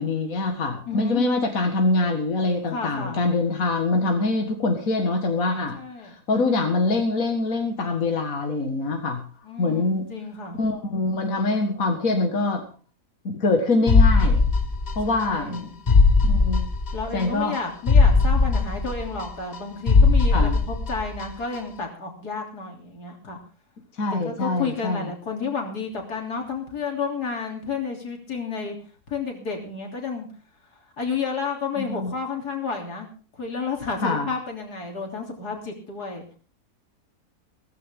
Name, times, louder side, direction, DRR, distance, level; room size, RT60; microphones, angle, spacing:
voice 1, 0.0-5.8 6.0-9.2 9.6-10.1 10.5-12.7 13.2-14.4 15.0-15.7 16.2-16.7 17.1-17.6 20.3-20.5 24.0-25.1 31.8-32.1 34.0-34.3, left 2 dB, 60° left, 3 dB, 2.2 m, -24 dB
voice 2, 0.9-1.3 2.7-3.2 5.7-6.1 9.4-10.6 15.1-15.8 16.9-23.4 24.2-28.8 29.1-30.3 31.0-33.1 33.4-36.2, left 5 dB, 85° left, 1 dB, 3.9 m, -31 dB
sound 1, 13.9-15.2 15.5-15.6 15.9-17.2 17.5-17.6 17.9-19.6 19.9-21.2 21.5-21.6, left 4 dB, 30° left, 1.3 m, -18 dB
16.5 x 15.0 x 3.7 m, 0.38 s
omnidirectional pair, 1.6 m